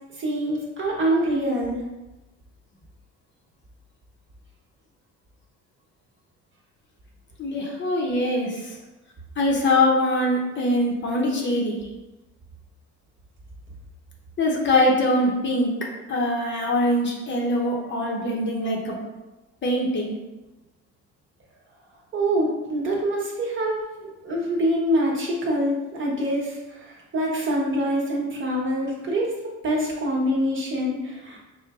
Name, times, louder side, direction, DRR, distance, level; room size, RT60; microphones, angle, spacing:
voice 1, 0.2-1.8 22.1-31.4, right 1 dB, 35° right, -3 dB, 1.1 m, -25 dB
voice 2, 7.4-8.8 9.4-11.8 14.4-15.7 16.1-19.0 19.6-20.1, left 1 dB, 35° left, -1 dB, 0.8 m, -23 dB
4.6 x 2.1 x 3.6 m, 1.1 s
cardioid pair, 125°, 33 cm